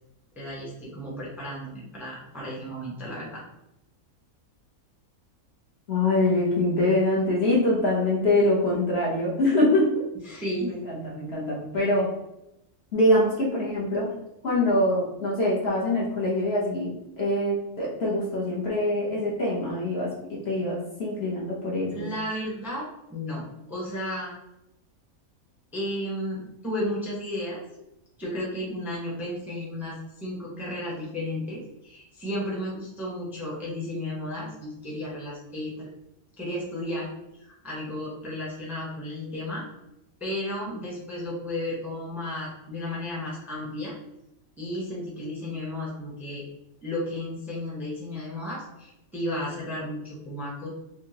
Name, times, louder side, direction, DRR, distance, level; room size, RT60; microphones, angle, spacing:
voice 1, 0.4-3.4 10.2-10.7 21.9-24.3 25.7-27.6 28.2-35.9 36.4-37.1 37.4-39.7 40.2-43.9 44.6-46.4 46.8-50.7, left 1 dB, ahead, -5 dB, 0.7 m, -33 dB
voice 2, 5.9-10.0 10.8-12.1 12.9-14.1 14.4-22.1, left 1 dB, 50° left, -5 dB, 0.9 m, -24 dB
3.5 x 2.8 x 2.8 m, 0.87 s
omnidirectional pair, 1.5 m